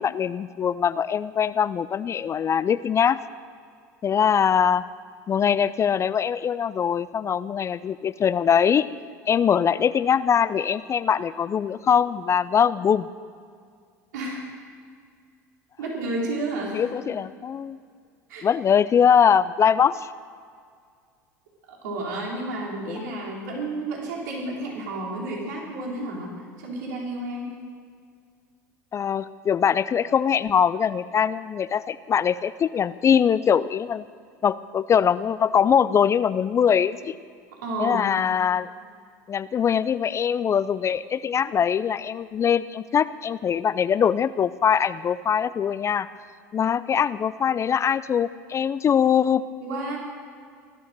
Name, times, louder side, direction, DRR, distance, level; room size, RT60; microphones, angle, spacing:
voice 1, 0.0-3.2 4.0-4.8 5.3-8.9 9.3-13.1 16.7-17.8 18.4-20.1 22.9-23.1 28.9-34.0 34.4-37.2 37.8-38.7 39.3-46.1 46.5-49.4, left 8 dB, 30° left, 15 dB, 0.5 m, -22 dB
voice 2, 14.1-14.5 15.8-16.9 18.3-18.5 21.7-26.3 26.6-27.5 37.6-38.1 49.6-50.0, right 2 dB, 75° right, -3 dB, 4.1 m, -31 dB
16.0 x 12.5 x 6.7 m, 2.1 s
hypercardioid pair, 80°, 10 cm